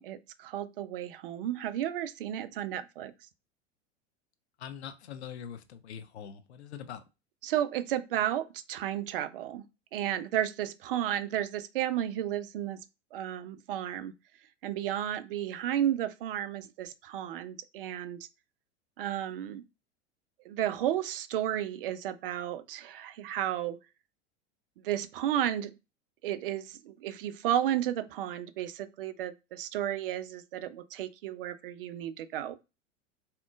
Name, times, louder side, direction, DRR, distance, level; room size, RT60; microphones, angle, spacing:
voice 1, 0.0-3.1 7.4-9.6 9.9-12.8 13.1-14.1 14.6-18.2 19.0-19.6 20.4-23.8 24.8-25.7 26.2-32.6, right 11 dB, 50° right, 0.4 m, -33 dB
voice 2, 4.6-7.0, left 8 dB, 60° left, 0.6 m, -43 dB
3.5 x 2.8 x 2.4 m
figure-of-eight pair, 85°, 37 cm